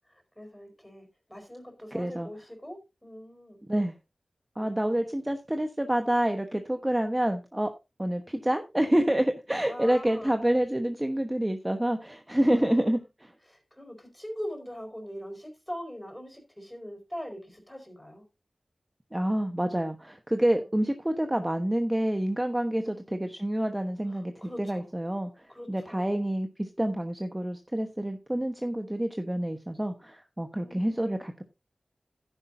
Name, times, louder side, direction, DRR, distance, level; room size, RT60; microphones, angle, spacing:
voice 1, 0.0-3.6 4.6-4.8 9.6-10.4 12.4-12.9 13.5-18.2 22.8-23.0 24.1-24.9 25.5-26.3 30.6-31.0, equal, 10° left, 5 dB, 4.4 m, -42 dB
voice 2, 1.9-2.3 3.7-4.0 4.6-7.7 8.0-13.3 19.1-24.3 24.6-31.4, right 1 dB, 15° right, 6 dB, 1.1 m, -28 dB
11.5 x 10.0 x 2.7 m, 0.25 s
wide cardioid pair, 55°, 0 cm